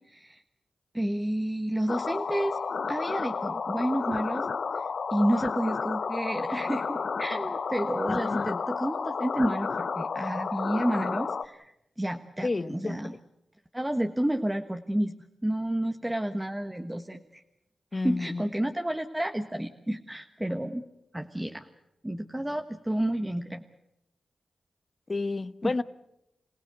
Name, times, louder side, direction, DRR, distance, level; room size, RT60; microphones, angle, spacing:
voice 1, 0.1-0.4 0.9-2.6 2.9-4.5 4.7-11.7 12.0-13.1 13.7-15.1 15.4-17.4 17.9-20.8 21.1-21.7 22.0-23.6 25.6-25.7, right 1 dB, 10° right, 1.4 m, -30 dB
sound 1, 1.9-11.5, left 5 dB, 65° left, 0.8 m, -31 dB
voice 2, 8.1-8.6 12.4-13.0 17.9-18.4 25.1-25.8, left 3 dB, 40° left, 1.1 m, -30 dB
27.0 x 16.5 x 8.2 m
cardioid pair, 45°, 0 cm